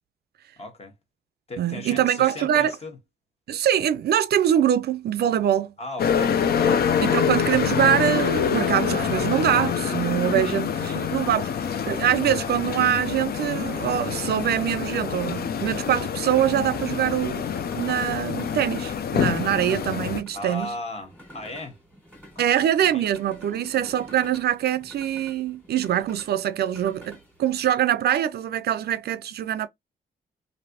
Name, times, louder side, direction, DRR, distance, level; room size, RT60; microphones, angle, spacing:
voice 1, 0.6-0.9 1.5-3.0 5.8-6.9 10.4-10.6 16.7-17.0 20.3-21.8 22.3-22.4 22.9-23.0, left 2 dB, 35° left, 1.2 m, -37 dB
voice 2, 1.6-2.7 3.5-5.7 7.0-17.4 17.7-20.7 22.4-29.7, right 10 dB, 70° right, 0.4 m, -24 dB
sound 1, 6.0-20.2, left 7 dB, 65° left, 0.5 m, -26 dB
sound 2, 10.8-27.7, right 1 dB, 10° left, 1.6 m, -49 dB
3.2 x 2.6 x 2.8 m
cardioid pair, 90°, 17 cm